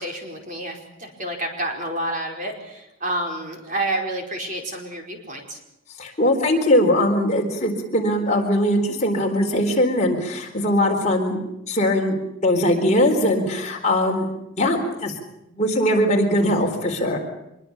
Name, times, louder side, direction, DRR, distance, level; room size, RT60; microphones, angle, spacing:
voice 1, 0.0-5.6, right 1 dB, 35° right, 2 dB, 4.8 m, -29 dB
voice 2, 6.0-11.4 11.7-12.2 12.4-14.3 14.6-15.1 15.5-17.2, left 1 dB, 35° left, 2 dB, 4.1 m, -20 dB
25.0 x 22.5 x 7.1 m, 0.86 s
head